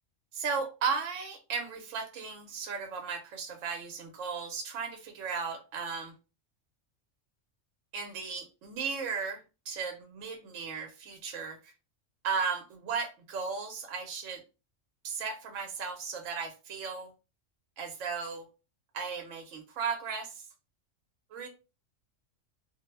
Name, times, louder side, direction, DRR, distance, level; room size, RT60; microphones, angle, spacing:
voice 1, 0.3-6.1 7.9-11.7 12.2-14.4 15.0-17.1 17.8-18.4 18.9-20.5 21.3-21.5, right 5 dB, 85° right, 5 dB, 0.9 m, -35 dB
2.3 x 2.0 x 3.1 m, 0.30 s
omnidirectional pair, 1.3 m